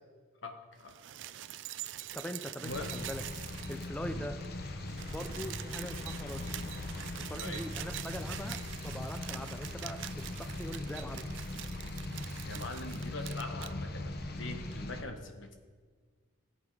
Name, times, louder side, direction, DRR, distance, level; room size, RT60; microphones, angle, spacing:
voice 1, 0.4-0.9 2.6-2.9 4.1-4.3 7.4-7.6 12.4-15.5, left 2 dB, 65° left, 5 dB, 1.4 m, -43 dB
sound 1, 0.8-4.1 4.4-4.5 4.7-13.7 14.7-14.8, right 13 dB, 60° right, 0.4 m, -45 dB
voice 2, 2.1-3.2 3.7-4.4 5.1-6.5 7.2-11.3, equal, 5° left, 7 dB, 0.5 m, -42 dB
sound 2, 2.7-15.0, left 2 dB, 50° left, 0.9 m, -40 dB
16.5 x 8.4 x 4.9 m, 1.5 s
head